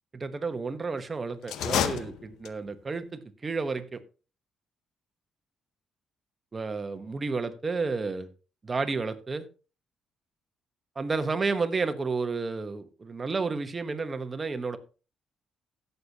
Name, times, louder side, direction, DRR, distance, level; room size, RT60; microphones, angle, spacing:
voice 1, 0.1-4.0 6.5-8.3 8.6-9.5 10.9-14.8, right 4 dB, 30° right, 1.2 m, -31 dB
sound 1, 1.4-2.8, left 9 dB, 85° left, 0.7 m, -30 dB
16.5 x 6.9 x 2.9 m
cardioid pair, 90°, 0 cm